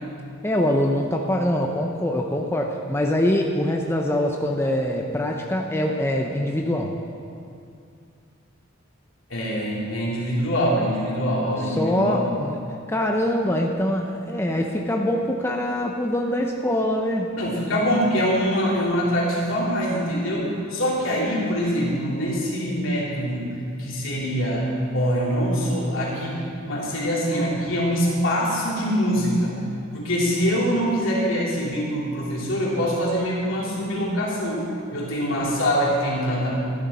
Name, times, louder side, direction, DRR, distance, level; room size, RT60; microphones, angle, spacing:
voice 1, 0.4-7.0 11.6-12.6 12.9-17.3, left 1 dB, 10° left, 1 dB, 0.6 m, -24 dB
voice 2, 9.3-12.2 17.4-29.7 29.9-34.6 34.9-36.6, equal, 70° left, -5 dB, 2.9 m, -24 dB
13.0 x 11.5 x 4.1 m, 2.4 s
head